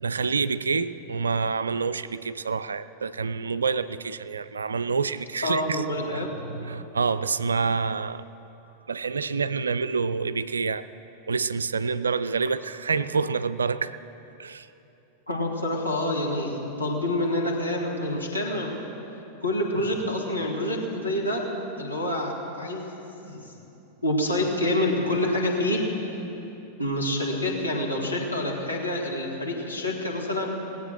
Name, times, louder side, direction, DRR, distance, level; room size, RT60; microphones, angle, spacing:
voice 1, 0.0-5.8 6.1-8.2 8.9-10.8 11.3-13.9 14.4-14.7, right 5 dB, 75° right, 14 dB, 0.4 m, -27 dB
voice 2, 5.4-6.3 15.3-18.7 19.4-21.4 21.8-22.8 23.2-23.4 24.0-25.8 26.8-30.5, left 1 dB, 90° left, -3 dB, 2.3 m, -27 dB
19.0 x 8.4 x 6.3 m, 3.0 s
figure-of-eight pair, 90°, 0 cm